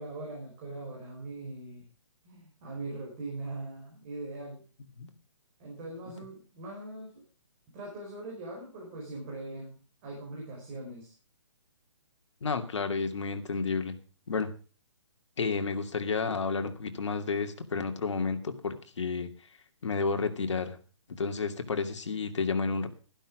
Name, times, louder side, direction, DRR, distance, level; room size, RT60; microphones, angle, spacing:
voice 1, 0.0-1.8 2.2-4.6 5.6-7.2 7.7-11.1, right 2 dB, 25° right, -2 dB, 5.3 m, -41 dB
voice 2, 12.4-14.0 14.3-14.5 15.4-19.3 19.8-20.8 21.2-22.9, left 4 dB, 70° left, 7 dB, 2.5 m, -31 dB
12.5 x 12.0 x 5.0 m, 0.37 s
hypercardioid pair, 165°, 16 cm